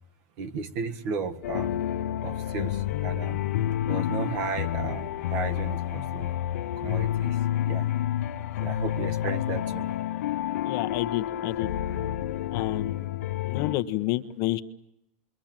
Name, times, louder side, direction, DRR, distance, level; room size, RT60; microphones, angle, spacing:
voice 1, 0.4-1.8 2.2-3.4 3.8-6.4 6.8-7.9 8.6-9.9, right 5 dB, 50° right, 8 dB, 1.8 m, -34 dB
sound 1, 1.4-13.7, left 12 dB, 80° left, 1.0 m, -29 dB
voice 2, 10.6-11.7 12.5-13.0 13.4-14.6, left 17 dB, 45° left, 9 dB, 1.1 m, -29 dB
27.5 x 23.5 x 9.1 m, 0.81 s
supercardioid pair, 140°, 8 cm